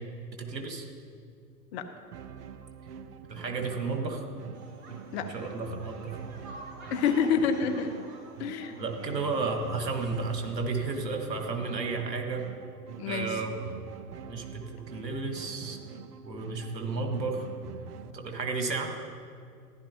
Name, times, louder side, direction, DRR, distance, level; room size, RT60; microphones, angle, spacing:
voice 1, 0.4-0.9 3.3-4.2 5.3-6.2 8.8-12.4 13.1-13.6 14.3-15.8 16.2-17.5 18.1-18.9, right 4 dB, 85° right, 4 dB, 1.5 m, -32 dB
sound 1, 2.1-18.1, right 8 dB, 65° right, 0.7 m, -45 dB
sound 2, 4.5-10.1, right 2 dB, 30° right, 1.8 m, -48 dB
voice 2, 6.9-7.9 8.4-8.7 13.0-13.4, left 6 dB, 40° left, 7 dB, 0.9 m, -27 dB
14.5 x 11.0 x 2.9 m, 2.3 s
figure-of-eight pair, 105°, 49 cm